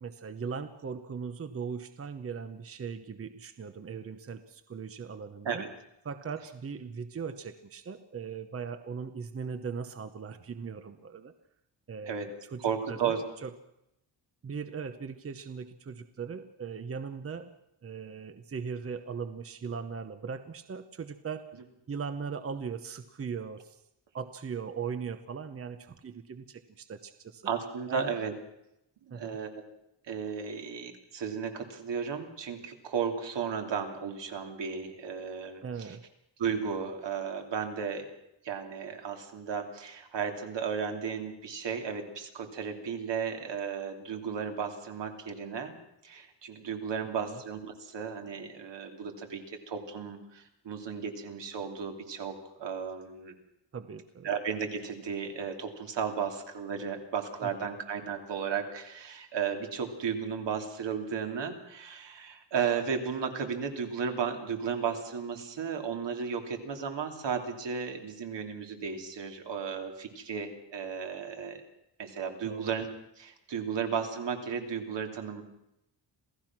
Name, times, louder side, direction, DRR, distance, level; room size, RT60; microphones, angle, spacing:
voice 1, 0.0-5.7 6.0-11.3 11.9-13.5 14.4-17.5 17.8-21.5 21.9-23.8 24.1-27.4 27.9-28.1 29.1-29.4 35.6-36.0 47.2-47.4 53.7-54.3 57.4-57.7 72.4-72.7, right 6 dB, 30° right, 10 dB, 0.9 m, -39 dB
voice 2, 12.6-13.2 27.4-28.3 29.0-29.5 30.1-36.0 36.4-38.1 38.4-45.8 46.0-53.3 54.2-71.6 72.0-72.9 73.2-75.4, right 6 dB, 75° right, 4 dB, 3.0 m, -34 dB
27.5 x 16.5 x 6.1 m, 0.84 s
wide cardioid pair, 160°, 43 cm